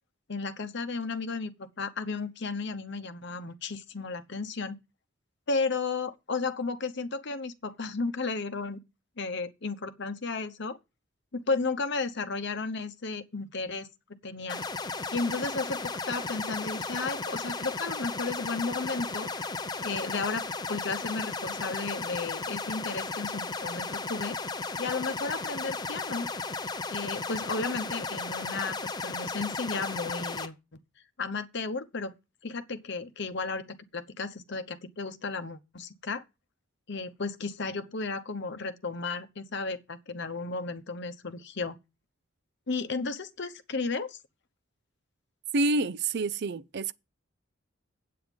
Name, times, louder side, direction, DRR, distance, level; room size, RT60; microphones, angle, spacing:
voice 1, 0.3-4.7 5.5-8.8 9.2-10.8 11.3-13.9 14.2-14.6 15.1-19.3 19.8-24.4 24.8-26.3 26.9-30.6 31.2-32.1 32.4-36.2 36.9-41.8 42.7-44.2, left 4 dB, 60° left, 0.9 m, -33 dB
sound 1, 14.5-30.5, left 3 dB, 20° left, 0.7 m, -35 dB
voice 2, 45.5-46.9, right 2 dB, 55° right, 0.4 m, -28 dB
8.6 x 7.8 x 5.2 m
head